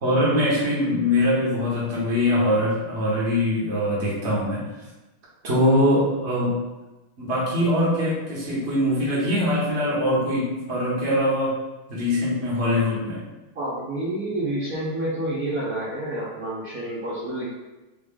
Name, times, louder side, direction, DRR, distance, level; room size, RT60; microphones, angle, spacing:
voice 1, 0.0-4.6 5.4-6.6 7.2-11.6 11.9-13.2, left 1 dB, 35° right, -6 dB, 1.3 m, -22 dB
voice 2, 13.5-17.5, right 1 dB, 60° right, -8 dB, 1.0 m, -29 dB
4.0 x 3.3 x 3.6 m, 1.1 s
omnidirectional pair, 2.4 m